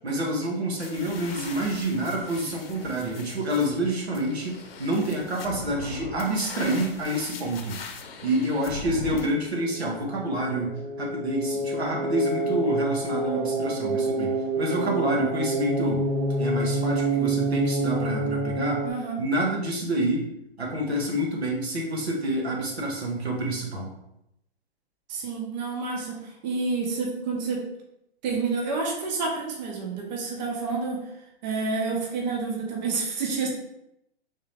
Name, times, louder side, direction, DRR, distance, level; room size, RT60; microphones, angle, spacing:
voice 1, 0.0-7.8 8.2-16.0 16.4-18.8 19.2-20.3 20.6-23.9, right 1 dB, 85° right, -1 dB, 1.1 m, -28 dB
sound 1, 0.8-9.3, left 4 dB, 65° left, 0.7 m, -40 dB
sound 2, 9.5-18.9, right 2 dB, 25° right, 0.4 m, -28 dB
voice 2, 18.8-19.2 25.1-27.7 28.2-31.1 31.4-33.5, right 4 dB, 45° right, -1 dB, 0.9 m, -29 dB
3.6 x 2.8 x 3.3 m, 0.82 s
hypercardioid pair, 125°, 31 cm